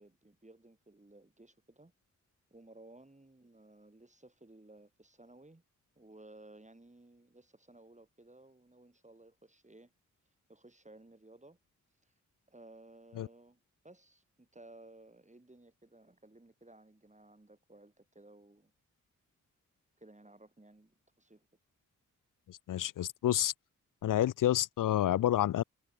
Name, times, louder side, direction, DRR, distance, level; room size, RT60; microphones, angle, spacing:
voice 1, 0.0-1.9 2.5-5.6 6.0-9.9 10.5-11.6 12.0-12.1 12.5-18.7 20.0-21.5, right 2 dB, 20° right, 6.9 m, -57 dB
voice 2, 22.5-23.5 24.0-25.6, left 12 dB, 85° left, 0.5 m, -29 dB
cardioid pair, 50°, 31 cm